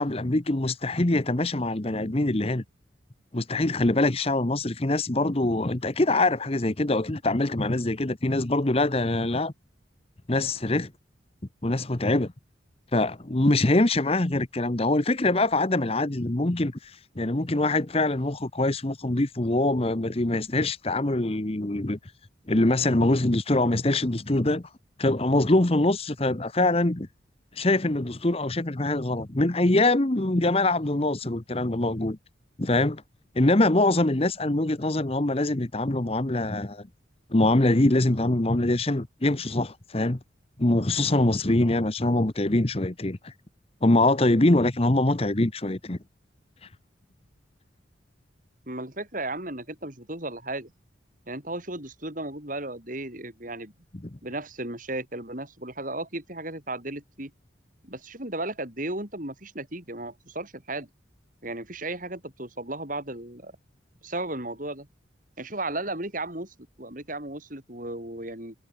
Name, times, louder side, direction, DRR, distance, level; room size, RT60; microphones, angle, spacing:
voice 1, 0.0-2.6 3.3-9.5 10.3-10.9 11.6-12.3 12.9-16.9 17.2-22.0 22.5-24.6 25.0-27.1 27.6-32.2 32.6-33.0 33.3-36.8 37.3-40.2 40.6-43.3 43.8-46.0 54.0-54.1, left 2 dB, 30° left, 1.0 m, -24 dB
voice 2, 48.7-50.7 51.3-53.7 54.2-57.3 57.8-60.9 61.4-63.5 64.0-64.9 65.4-68.5, right 2 dB, 45° right, 5.4 m, -35 dB
head